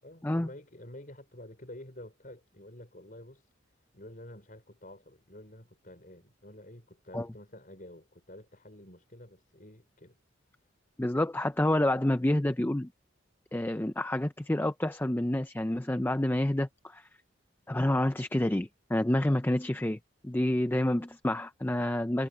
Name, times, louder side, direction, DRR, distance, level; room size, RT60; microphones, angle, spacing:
voice 1, 0.0-3.5 3.9-10.2, left 1 dB, 45° left, 5.1 m, -49 dB
voice 2, 11.0-12.9 13.5-17.1 17.7-22.3, left 1 dB, 10° left, 0.5 m, -28 dB
head